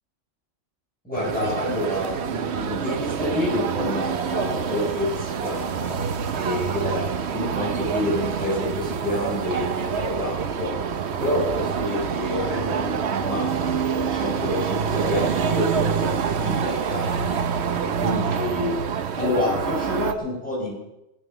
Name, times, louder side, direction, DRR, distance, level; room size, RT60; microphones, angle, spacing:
voice 1, 1.0-6.0 6.3-10.9 11.2-17.4 17.8-18.7 19.1-20.8, left 1 dB, 5° left, -6 dB, 7.6 m, -28 dB
sound 1, 1.1-20.1, right 7 dB, 65° right, 1.0 m, -26 dB
19.0 x 9.0 x 7.0 m, 0.92 s
omnidirectional pair, 1.2 m